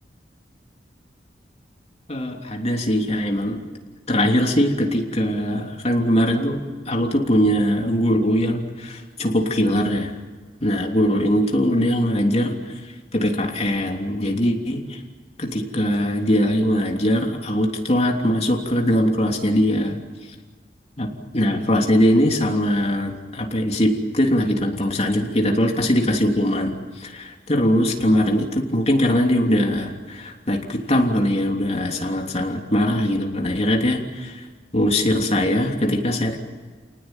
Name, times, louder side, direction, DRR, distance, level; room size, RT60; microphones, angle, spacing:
voice 1, 2.1-3.6 4.1-10.1 10.6-15.0 15.4-20.0 21.0-34.4 34.7-36.4, equal, 35° left, 2 dB, 3.3 m, -21 dB
29.0 x 19.0 x 9.2 m, 1.5 s
head